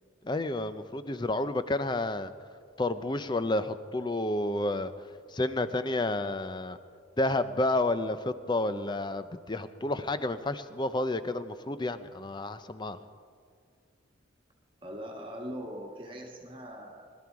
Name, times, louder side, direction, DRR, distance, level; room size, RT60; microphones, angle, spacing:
voice 1, 0.2-2.3 2.8-4.9 5.3-6.8 7.2-13.0, left 2 dB, 25° left, 12 dB, 0.6 m, -30 dB
voice 2, 14.8-17.1, equal, 25° right, -1 dB, 1.7 m, -41 dB
21.5 x 12.5 x 4.8 m, 2.1 s
head